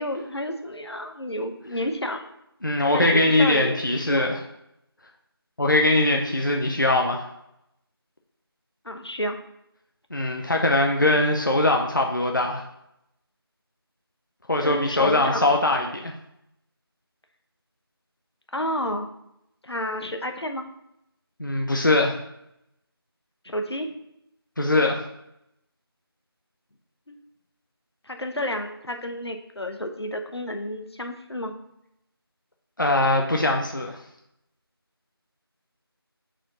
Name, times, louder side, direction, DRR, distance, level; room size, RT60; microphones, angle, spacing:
voice 1, 0.0-2.3 2.9-4.4 8.8-9.4 14.6-15.5 18.5-19.1 19.6-20.6 23.4-23.9 27.1-27.2 28.1-31.5, left 1 dB, 85° left, 5 dB, 0.9 m, -30 dB
voice 2, 2.6-4.4 5.6-7.2 10.1-12.6 14.5-16.1 21.4-22.2 24.6-25.0 32.8-34.0, left 2 dB, 50° left, 2 dB, 0.6 m, -21 dB
4.7 x 4.4 x 5.6 m, 0.81 s
figure-of-eight pair, 180°, 13 cm